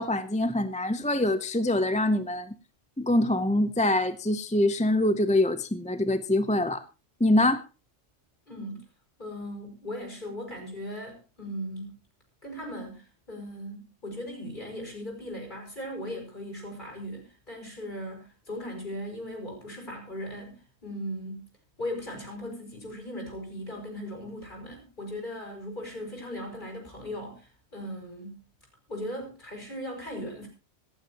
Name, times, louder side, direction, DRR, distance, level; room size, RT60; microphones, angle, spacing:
voice 1, 0.0-2.6 3.0-6.8 7.2-7.6, left 1 dB, 10° left, 0.5 m, -24 dB
voice 2, 8.5-8.8 9.2-11.9 12.4-21.4 21.8-28.4 28.9-30.5, equal, 40° left, 6.1 m, -38 dB
26.0 x 8.9 x 3.0 m
omnidirectional pair, 1.3 m